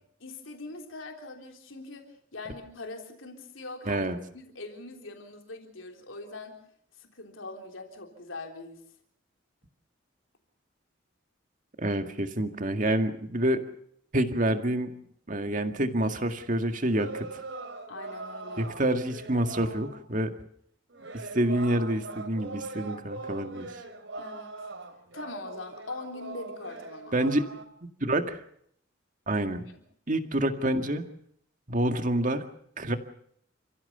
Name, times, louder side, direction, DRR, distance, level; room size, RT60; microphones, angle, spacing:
voice 1, 0.2-4.1 4.3-6.6 7.0-8.8 17.9-18.7 24.2-24.5 25.1-27.2, left 3 dB, 90° left, 3 dB, 3.7 m, -42 dB
voice 2, 11.8-13.6 14.1-14.9 15.3-17.4 18.6-20.3 21.1-23.7 27.1-27.5 28.0-28.4 29.3-29.7 30.1-31.0 31.7-32.4 32.8-33.0, right 1 dB, 40° right, 7 dB, 2.0 m, -27 dB
sound 1, 16.9-20.0 20.9-27.6, right 3 dB, 75° right, 3.3 m, -41 dB
29.5 x 15.5 x 6.8 m, 0.67 s
head